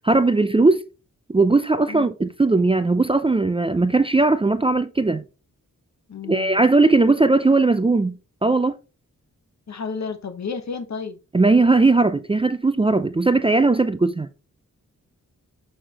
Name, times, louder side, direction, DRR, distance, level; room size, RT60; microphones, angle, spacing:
voice 1, 0.0-0.8 1.3-5.3 6.3-8.1 8.4-8.8 11.3-14.3, right 3 dB, 20° right, 0.4 m, -18 dB
voice 2, 6.1-6.6 9.7-11.2, left 5 dB, 60° left, 1.0 m, -32 dB
6.5 x 5.8 x 2.9 m
wide cardioid pair, 110°, 31 cm